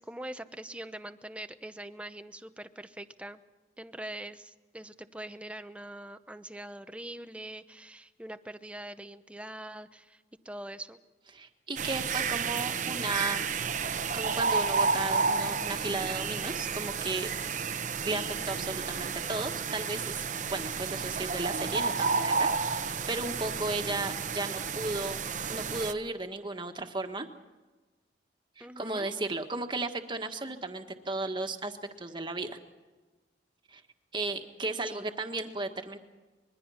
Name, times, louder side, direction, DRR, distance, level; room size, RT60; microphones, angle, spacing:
voice 1, 0.0-3.4 3.8-11.0 28.6-29.1 34.9-35.1, right 1 dB, 5° right, 10 dB, 0.8 m, -43 dB
voice 2, 11.3-13.5 14.1-17.3 18.0-20.2 20.5-25.2 25.5-27.3 28.6-32.6 33.7-33.8 34.1-36.0, right 2 dB, 25° right, 6 dB, 1.6 m, -35 dB
sound 1, 11.8-25.9, right 5 dB, 45° right, 0.9 m, -31 dB
25.5 x 22.0 x 5.7 m, 1.2 s
head